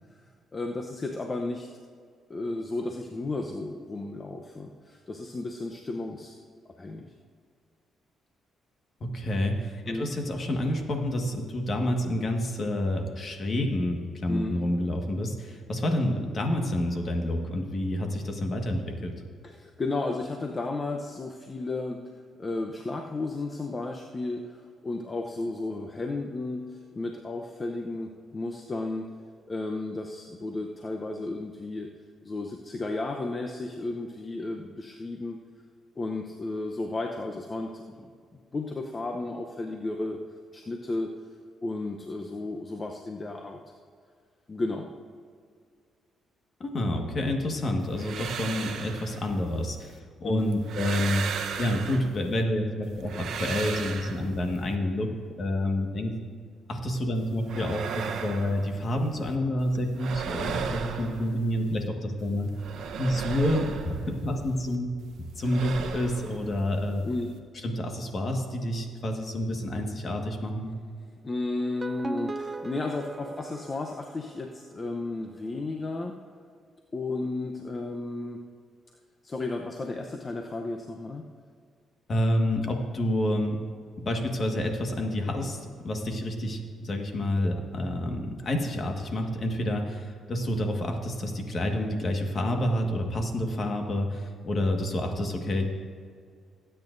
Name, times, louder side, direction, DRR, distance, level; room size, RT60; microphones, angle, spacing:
voice 1, 0.5-1.7 2.3-6.4 6.7-7.1 9.9-10.1 14.3-14.5 19.4-22.0 22.4-29.1 29.5-31.9 32.2-35.4 36.0-38.1 38.5-40.2 40.5-41.1 41.6-43.6 44.5-44.9 50.2-50.5 67.0-67.3 71.2-76.1 76.9-78.4 79.2-81.2, left 2 dB, 30° left, 2 dB, 0.8 m, -33 dB
voice 2, 9.0-19.2 46.6-51.3 51.6-55.1 55.4-56.1 56.7-62.5 63.0-64.9 65.4-67.0 67.6-70.7 82.1-83.6 84.0-95.7, left 1 dB, 45° left, 3 dB, 1.6 m, -28 dB
sound 1, 47.8-50.0 50.4-52.4 52.8-54.7 57.1-59.3 59.6-61.9 62.2-64.7 65.0-67.4, right 6 dB, 70° right, 0.9 m, -37 dB
sound 2, 71.6-74.7, right 3 dB, 25° right, 0.3 m, -39 dB
19.5 x 8.9 x 2.6 m, 2.1 s
cardioid pair, 90°, 0 cm